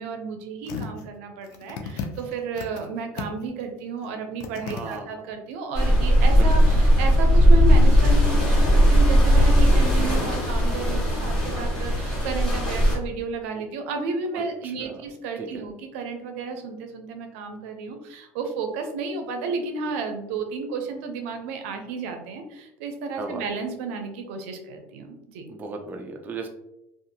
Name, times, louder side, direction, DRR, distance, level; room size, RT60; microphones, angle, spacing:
voice 1, 0.0-25.5, right 4 dB, 85° right, 5 dB, 0.5 m, -32 dB
sound 1, 0.6-1.0 1.4-2.9 3.2-3.6 4.0-4.1 4.4-5.0 5.5-5.6, left 6 dB, 70° left, 0.4 m, -35 dB
voice 2, 4.7-5.2 6.3-6.5 14.3-15.0 15.4-15.6 23.2-23.5 25.5-26.5, right 3 dB, 25° right, 3 dB, 0.4 m, -36 dB
sound 2, 5.7-12.9, equal, 10° left, 1.1 m, -18 dB
2.6 x 2.4 x 2.7 m, 0.88 s
supercardioid pair, 120°, 7 cm